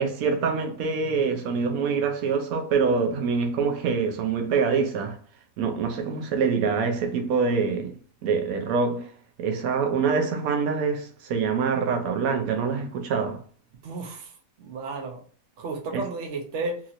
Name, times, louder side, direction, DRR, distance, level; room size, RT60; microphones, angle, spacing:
voice 1, 0.0-5.2 5.6-7.9 8.2-9.1 9.4-13.4 15.9-16.0, right 5 dB, 85° right, 1.0 m, -25 dB
voice 2, 13.8-14.3 14.6-15.2 15.6-16.8, right 3 dB, 60° right, 1.0 m, -32 dB
3.0 x 2.8 x 2.4 m
omnidirectional pair, 1.5 m